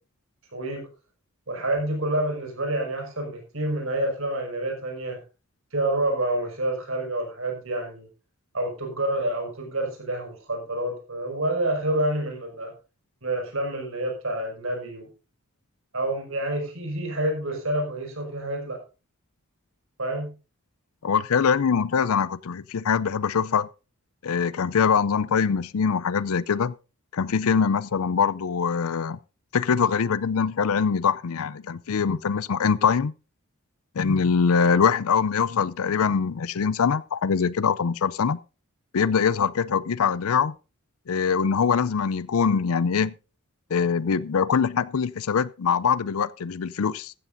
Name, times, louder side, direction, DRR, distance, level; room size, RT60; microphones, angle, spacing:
voice 1, 0.5-0.9 1.5-5.2 5.7-8.1 8.5-12.7 13.2-15.1 15.9-18.8 20.0-20.3, right 1 dB, 65° right, 5.6 m, -28 dB
voice 2, 21.0-23.7 24.2-26.7 27.1-29.2 29.5-33.1 34.0-38.4 38.9-40.5 41.1-43.1 43.7-47.1, left 6 dB, 75° left, 0.5 m, -23 dB
15.5 x 13.5 x 2.6 m
head